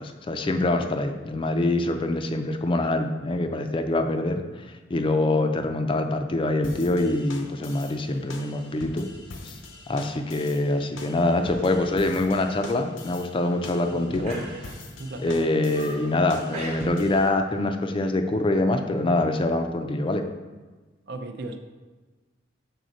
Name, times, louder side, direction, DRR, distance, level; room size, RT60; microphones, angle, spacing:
voice 1, 0.0-4.4 4.9-9.1 9.4-9.6 9.9-14.4 15.2-20.3, left 2 dB, 25° left, 6 dB, 0.4 m, -25 dB
sound 1, 6.6-17.3, left 3 dB, 85° left, 0.7 m, -44 dB
sound 2, 9.8-10.2 10.6-10.9 11.3-11.6 12.0-12.2 12.5-12.6 13.2-13.7 14.2-15.0 15.4-16.1 16.5-17.2 17.5-17.7, right 2 dB, 35° right, 0.9 m, -42 dB
voice 2, 13.9-14.7 14.9-15.4 21.1-21.6, right 2 dB, 60° right, 6 dB, 0.5 m, -36 dB
6.3 x 4.1 x 4.0 m, 1.3 s
head